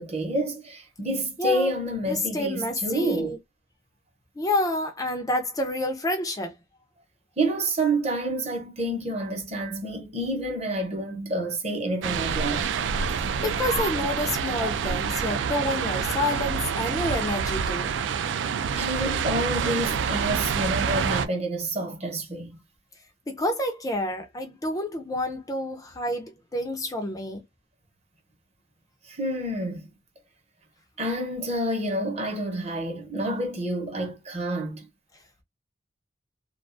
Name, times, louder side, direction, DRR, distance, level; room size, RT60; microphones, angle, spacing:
voice 1, 0.0-3.3 7.4-12.7 18.7-22.6 29.1-29.9 31.0-34.9, right 1 dB, 35° right, 0.8 m, -28 dB
voice 2, 1.4-1.7 2.1-3.4 4.4-6.5 13.4-18.0 23.3-27.4, left 1 dB, 20° left, 0.4 m, -28 dB
sound 1, 12.0-21.3, right 6 dB, 70° right, 0.3 m, -27 dB
2.4 x 2.3 x 2.5 m
head